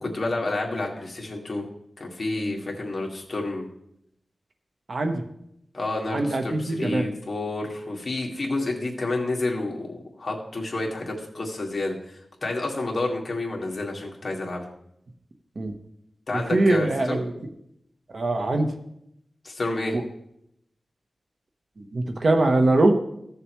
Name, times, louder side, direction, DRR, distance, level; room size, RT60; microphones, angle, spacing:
voice 1, 0.0-1.6 2.0-3.7 5.7-14.7 16.3-17.2 19.4-20.0, left 2 dB, 45° left, -1 dB, 2.0 m, -29 dB
voice 2, 4.9-5.2 6.1-7.1 15.6-15.7 16.5-17.3 18.1-18.7 21.8-22.9, right 2 dB, 60° right, 5 dB, 1.1 m, -22 dB
15.5 x 6.8 x 3.1 m, 0.76 s
wide cardioid pair, 110°, 0 cm